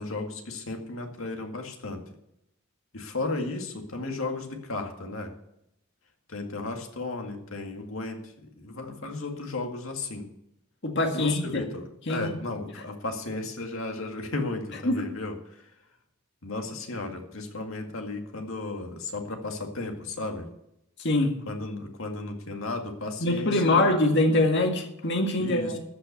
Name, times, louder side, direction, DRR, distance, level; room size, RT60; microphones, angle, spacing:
voice 1, 0.0-2.0 2.9-5.3 6.3-10.3 11.1-15.3 16.4-20.5 21.5-23.9 25.4-25.7, left 2 dB, 75° left, 3 dB, 2.0 m, -34 dB
voice 2, 10.8-11.6 12.1-12.4 14.8-15.1 21.0-21.3 23.2-25.8, left 2 dB, 55° left, 4 dB, 1.9 m, -24 dB
14.0 x 5.7 x 9.3 m, 0.82 s
head